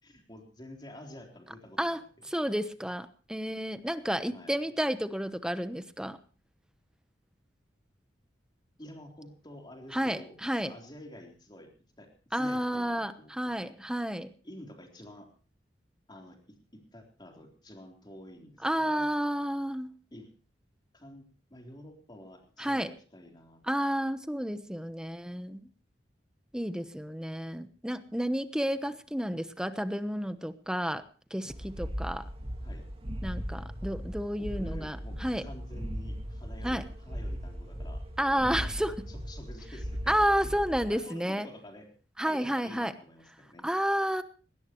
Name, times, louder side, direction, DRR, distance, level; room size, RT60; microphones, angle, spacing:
voice 1, 0.0-2.3 4.3-4.7 8.8-11.7 12.0-13.3 13.6-13.7 14.4-15.3 16.1-16.4 16.7-19.1 20.1-20.3 20.9-23.6 32.6-32.8 34.4-38.0 38.4-38.6 39.1-40.2 40.9-41.9 42.3-43.7, left 1 dB, 25° left, 1 dB, 3.7 m, -49 dB
voice 2, 2.3-6.2 9.9-10.7 12.3-14.3 18.6-19.9 22.6-22.9 23.6-25.6 26.5-31.0 31.3-32.3 33.2-35.4 36.6-36.8 38.2-38.9 40.1-41.5 42.2-42.9 43.6-44.2, equal, 5° right, 11 dB, 0.9 m, -31 dB
sound 1, 31.5-40.9, equal, 35° right, 2.0 m, -38 dB
20.0 x 18.0 x 3.1 m, 0.38 s
head